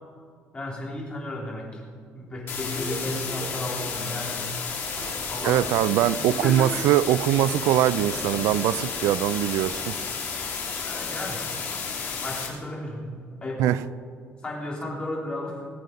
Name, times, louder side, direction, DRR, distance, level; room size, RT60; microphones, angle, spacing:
voice 1, 0.5-4.4 5.3-5.8 6.3-6.8 10.8-11.4 12.2-13.8 14.4-15.6, left 1 dB, 20° left, 3.5 m, -34 dB
sound 1, 2.5-12.5, left 5 dB, 50° left, 3.1 m, -32 dB
sound 2, 2.7-5.6, right 1 dB, 5° right, 1.3 m, -42 dB
sound 3, 4.7-10.6, right 2 dB, 55° right, 3.5 m, -43 dB
voice 2, 5.4-9.9 13.6-13.8, right 13 dB, 85° right, 0.4 m, -22 dB
20.5 x 8.0 x 5.2 m
cardioid pair, 145°, 5 cm